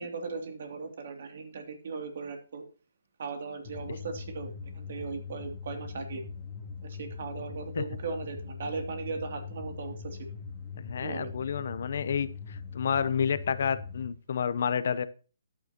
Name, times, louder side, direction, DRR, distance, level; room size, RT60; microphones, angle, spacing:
voice 1, 0.0-2.6 3.2-6.2 6.8-10.2 11.0-11.3, right 4 dB, 60° right, 5 dB, 2.8 m, -38 dB
sound 1, 3.6-14.1, left 5 dB, 35° left, 1.8 m, -41 dB
voice 2, 10.8-15.0, left 7 dB, 60° left, 14 dB, 0.8 m, -30 dB
13.5 x 9.1 x 3.0 m, 0.37 s
hypercardioid pair, 145°, 0 cm